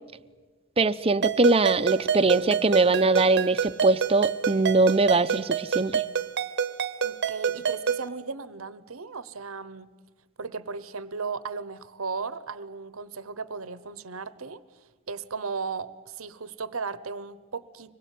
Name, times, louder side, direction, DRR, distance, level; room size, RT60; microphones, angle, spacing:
voice 1, 0.8-6.0, right 3 dB, 30° right, 10 dB, 0.7 m, -22 dB
Ringtone, 1.2-8.1, right 7 dB, 55° right, 0.9 m, -28 dB
voice 2, 7.0-9.9 10.4-14.6 15.1-18.0, right 4 dB, 85° right, 16 dB, 1.0 m, -36 dB
25.0 x 21.5 x 9.3 m, 1.4 s
head